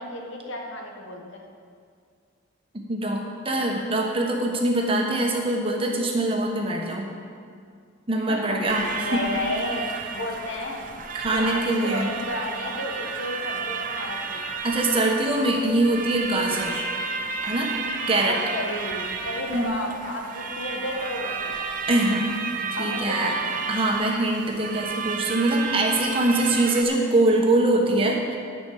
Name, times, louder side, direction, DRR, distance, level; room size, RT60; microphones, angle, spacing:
voice 1, 0.0-1.4 8.2-10.9 11.3-14.5 18.1-21.6 22.7-23.5, left 1 dB, 75° left, 1 dB, 1.6 m, -32 dB
voice 2, 2.7-7.1 8.1-9.2 11.1-12.1 14.6-16.9 17.4-17.7 18.1-18.4 19.5-19.7 21.9-22.3 22.8-23.3 23.7-28.4, right 2 dB, 25° right, 0 dB, 1.3 m, -23 dB
sound 1, 8.7-26.8, right 5 dB, 40° right, 0.8 m, -32 dB
10.0 x 6.2 x 8.6 m, 2.2 s
head